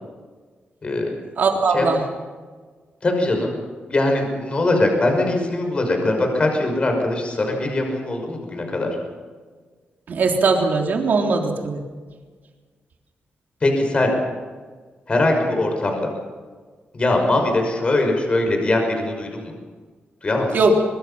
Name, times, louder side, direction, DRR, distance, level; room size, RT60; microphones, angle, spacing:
voice 1, 0.8-1.2 1.7-1.9 3.0-3.6 3.9-9.0 13.6-14.1 15.1-16.1 16.9-19.5 20.2-20.6, left 2 dB, 30° left, 3 dB, 5.9 m, -21 dB
voice 2, 1.4-2.0 10.1-11.8 20.5-20.7, right 4 dB, 60° right, 2 dB, 3.5 m, -19 dB
24.0 x 22.0 x 5.8 m, 1.5 s
wide cardioid pair, 120°, 4 cm